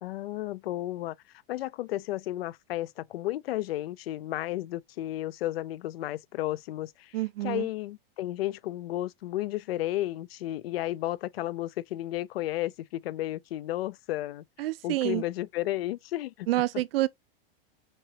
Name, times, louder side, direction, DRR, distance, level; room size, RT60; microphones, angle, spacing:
voice 1, 0.0-1.1 1.5-16.5 16.7-16.8, left 15 dB, 90° left, 0.4 m, -33 dB
voice 2, 7.1-7.7 14.6-15.2 16.5-17.1, right 16 dB, 80° right, 0.6 m, -28 dB
6.0 x 2.9 x 2.8 m
supercardioid pair, 145°, 29 cm